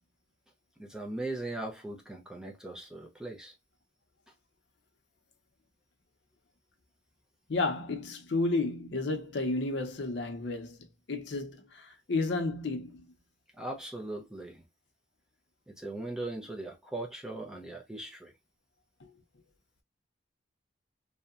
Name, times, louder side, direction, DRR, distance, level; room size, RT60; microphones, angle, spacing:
voice 1, 0.8-3.5 13.6-14.6 15.7-18.3, right 2 dB, 5° right, 0.5 m, -39 dB
voice 2, 7.5-10.8 11.1-13.1 19.0-19.1, left 3 dB, 75° left, 0.6 m, -32 dB
2.8 x 2.1 x 2.3 m
head